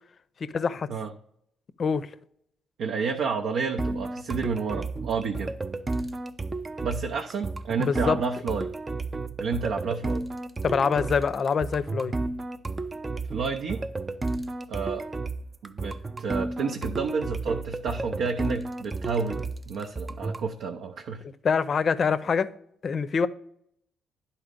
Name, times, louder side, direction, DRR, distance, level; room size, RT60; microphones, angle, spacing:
voice 1, 0.4-0.9 1.8-2.1 7.8-8.2 10.6-12.1 21.4-22.5 22.8-23.3, left 6 dB, 45° left, 0.5 m, -25 dB
voice 2, 2.8-5.5 6.8-8.7 9.4-10.3 13.3-13.8 14.7-15.1 15.6-21.2, right 5 dB, 75° right, 0.6 m, -30 dB
sound 1, 3.8-20.5, right 3 dB, 25° right, 0.4 m, -32 dB
10.5 x 4.2 x 5.1 m
cardioid pair, 90°, 0 cm